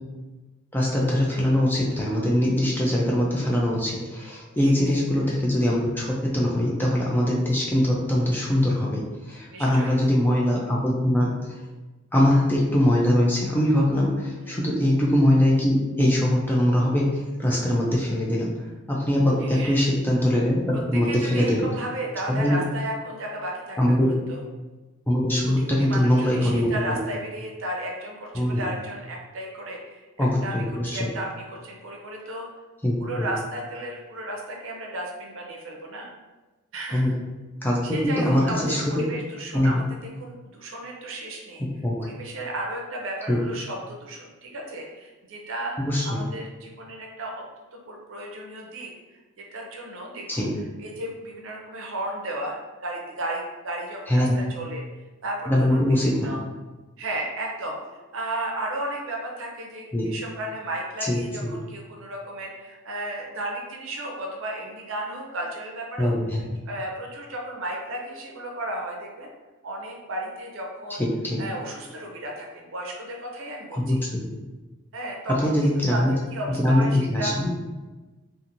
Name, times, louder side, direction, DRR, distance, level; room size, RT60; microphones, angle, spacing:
voice 1, 0.7-11.6 12.1-21.7 22.3-22.6 23.8-24.1 25.1-27.0 28.3-28.7 30.2-31.1 32.8-33.3 36.9-37.1 37.6-39.1 39.5-39.9 41.8-42.0 43.3-43.4 45.9-46.2 50.3-50.5 54.1-54.4 55.5-56.3 59.9-60.1 61.0-61.6 66.0-66.6 71.0-71.4 73.7-74.3 75.4-76.1 76.5-77.5, left 1 dB, 10° left, -4 dB, 0.3 m, -22 dB
voice 2, 4.6-5.0 9.5-9.9 14.4-14.6 19.4-19.9 20.9-23.9 24.3-24.4 25.7-32.5 33.0-36.1 36.7-37.0 37.8-39.8 40.2-41.6 42.0-45.7 46.1-47.3 47.7-50.5 50.8-54.8 55.2-56.4 57.0-66.1 66.7-69.3 69.6-71.0 71.4-73.8 74.9-77.4, right 1 dB, 60° right, 0 dB, 0.5 m, -34 dB
2.8 x 2.5 x 2.5 m, 1.2 s
head